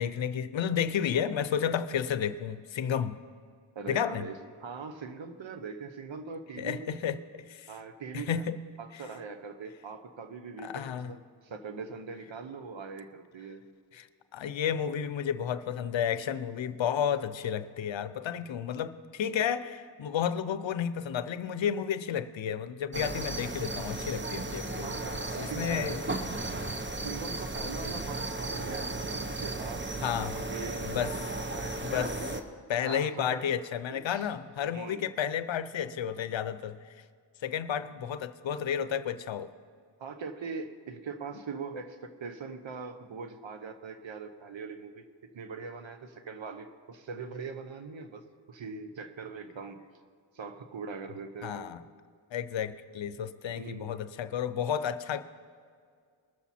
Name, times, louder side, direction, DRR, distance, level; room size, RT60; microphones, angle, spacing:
voice 1, 0.0-3.2 3.9-4.3 6.6-7.7 8.1-8.6 8.9-9.0 10.6-11.1 13.9-14.1 14.3-25.0 25.4-26.0 30.0-30.4 30.8-31.1 31.8-32.2 32.7-36.8 37.4-39.5 51.4-51.8 52.3-55.2, left 8 dB, 80° left, 13 dB, 0.7 m, -32 dB
voice 2, 3.7-6.9 7.7-8.4 8.8-13.7 24.8-25.9 27.0-31.1 31.4-31.9 32.8-33.5 33.9-34.3 34.7-35.1 40.0-49.8 50.3-51.7 53.5-53.9, right 5 dB, 80° right, 7 dB, 1.0 m, -41 dB
sound 1, 22.9-32.4, right 2 dB, 25° right, 1.0 m, -35 dB
20.5 x 7.1 x 4.2 m, 2.1 s
cardioid pair, 50°, 45 cm